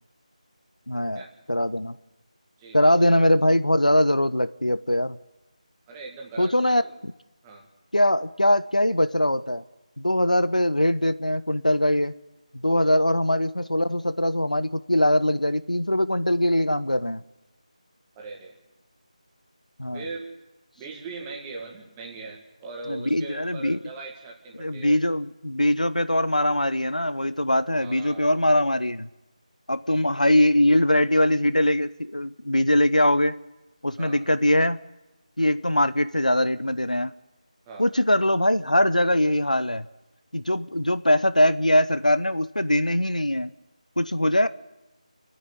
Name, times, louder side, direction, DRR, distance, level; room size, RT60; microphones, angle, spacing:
voice 1, 0.9-1.2 1.5-2.0 2.7-5.2 6.4-7.1 7.9-9.6 10.0-12.1 12.6-17.2 19.8-20.0 22.9-23.8 24.5-29.1 29.7-33.4 33.8-34.8 35.4-37.1 37.8-39.9 40.3-43.5 44.0-44.5, left 1 dB, 90° left, 14 dB, 0.8 m, -22 dB
voice 2, 2.6-3.1 5.9-7.0 7.4-7.6 12.8-13.0 18.2-18.6 19.9-20.3 20.8-25.0 27.8-28.6 34.0-34.2 37.7-37.9, right 3 dB, 10° right, 0 dB, 2.0 m, -40 dB
28.5 x 9.8 x 9.6 m, 1.0 s
figure-of-eight pair, 165°, 4 cm